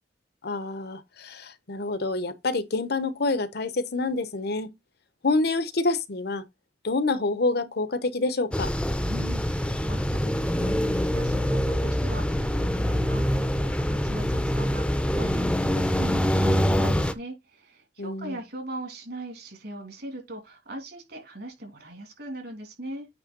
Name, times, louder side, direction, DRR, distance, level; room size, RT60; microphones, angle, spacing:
voice 1, 0.4-4.7 5.2-6.4 6.8-8.7 18.0-18.4, left 3 dB, 65° left, 1.0 m, -27 dB
sound 1, 8.5-17.1, equal, 5° left, 0.7 m, -25 dB
voice 2, 9.1-23.1, right 1 dB, 65° right, 3.1 m, -40 dB
8.9 x 3.4 x 5.2 m
head